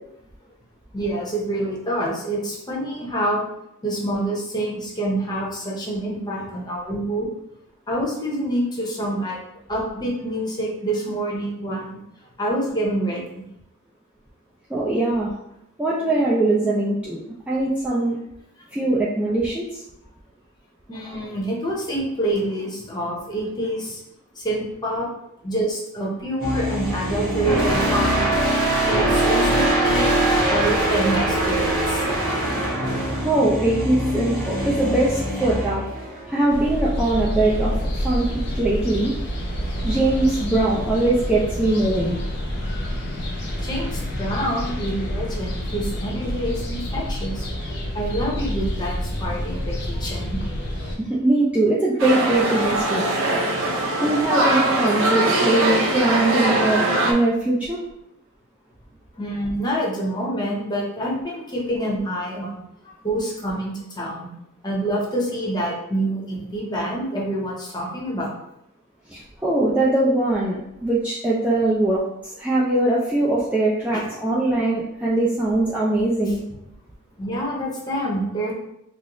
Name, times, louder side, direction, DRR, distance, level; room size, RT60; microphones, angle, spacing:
voice 1, 0.9-3.5 3.8-7.3 7.9-9.4 9.7-12.0 12.4-13.4 20.9-24.0 24.4-25.1 25.4-28.6 28.9-30.1 30.5-32.1 43.6-47.5 47.9-50.4 59.1-62.6 63.0-64.3 64.6-68.3 73.9-74.0 76.3-76.4 77.2-78.5, right 1 dB, 20° left, -4 dB, 0.7 m, -27 dB
voice 2, 14.7-15.3 15.8-17.2 17.5-18.2 18.7-19.8 33.1-35.8 36.3-39.1 39.8-42.2 51.0-53.4 53.7-57.8 69.1-76.4, right 2 dB, 5° right, -7 dB, 0.3 m, -21 dB
sound 1, 26.4-36.7, right 1 dB, 40° right, 1.5 m, -22 dB
sound 2, 36.5-51.0, equal, 50° left, 0.6 m, -28 dB
sound 3, 52.0-57.1, right 2 dB, 60° right, 0.6 m, -21 dB
3.8 x 2.0 x 2.9 m, 0.81 s
head